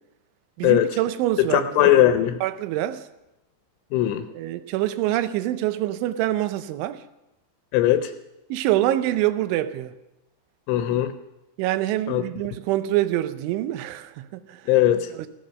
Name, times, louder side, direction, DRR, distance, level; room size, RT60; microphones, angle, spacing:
voice 1, 0.6-1.9 2.4-3.1 4.3-7.0 8.5-9.9 11.6-14.6 15.2-15.3, right 14 dB, 80° right, 3.1 m, -25 dB
voice 2, 1.5-2.4 3.9-4.2 7.7-8.1 10.7-11.1 12.1-12.2 14.7-15.1, left 12 dB, 80° left, 3.1 m, -19 dB
15.5 x 14.0 x 6.4 m
omnidirectional pair, 5.5 m